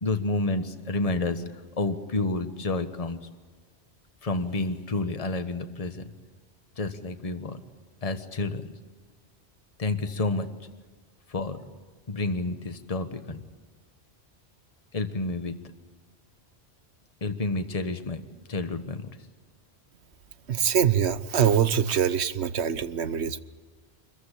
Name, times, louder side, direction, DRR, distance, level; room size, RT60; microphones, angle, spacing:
voice 1, 0.0-1.4 1.8-3.2 4.2-6.0 6.8-7.6 8.0-8.7 9.8-10.5 11.3-11.6 12.1-13.4 14.9-15.5 17.2-18.2 18.5-19.1, left 2 dB, 35° left, 8 dB, 1.3 m, -29 dB
voice 2, 20.5-23.4, right 8 dB, 75° right, 14 dB, 1.2 m, -24 dB
25.0 x 15.0 x 10.0 m, 1.4 s
omnidirectional pair, 1.2 m